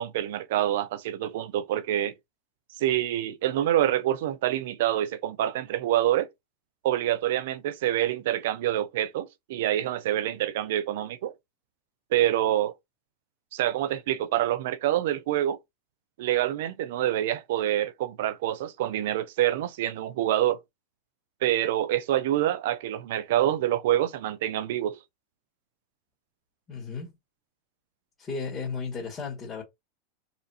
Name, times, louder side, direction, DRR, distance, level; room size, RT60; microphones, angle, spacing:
voice 1, 0.0-2.1 2.8-6.3 6.8-11.3 12.1-12.7 13.5-15.6 16.2-20.6 21.4-25.0, right 12 dB, 70° right, 0.4 m, -26 dB
voice 2, 26.7-27.1 28.2-29.6, left 5 dB, 30° left, 1.8 m, -34 dB
4.1 x 2.5 x 2.7 m
supercardioid pair, 120°, 0 cm